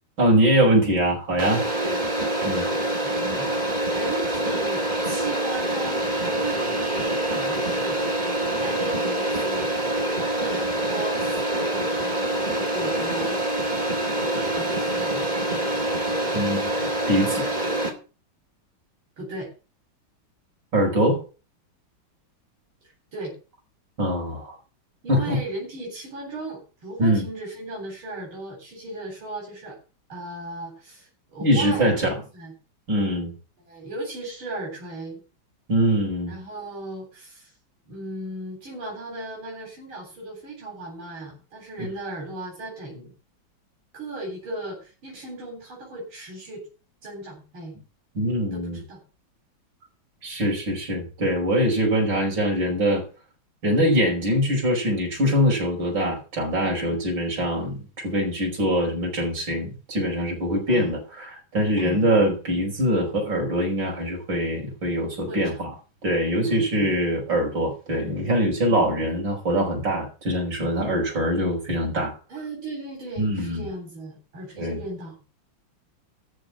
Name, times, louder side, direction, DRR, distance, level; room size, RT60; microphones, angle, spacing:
voice 1, 0.2-1.6 2.4-2.6 16.3-17.5 20.7-21.2 24.0-24.6 25.1-25.4 27.0-27.2 31.4-32.1 32.9-33.3 35.7-36.3 48.2-48.8 50.2-53.0 53.6-65.7 66.0-72.1 73.2-73.7 74.6-74.8, equal, 65° right, -2 dB, 5.7 m, -23 dB
sound 1, 1.4-17.9, right 1 dB, 20° right, 2.7 m, -25 dB
voice 2, 2.8-8.0 8.6-9.7 10.3-13.4 14.2-15.3 19.2-19.5 22.8-23.3 25.0-29.8 30.1-32.0 32.3-32.5 33.7-35.2 36.3-37.5 37.9-43.1 43.9-46.6 47.0-47.8 48.5-49.0 60.7-60.9 61.8-62.1 65.3-65.6 66.4-66.9 72.3-75.2, right 2 dB, 85° right, -1 dB, 4.6 m, -36 dB
13.0 x 4.8 x 8.6 m, 0.35 s
omnidirectional pair, 2.2 m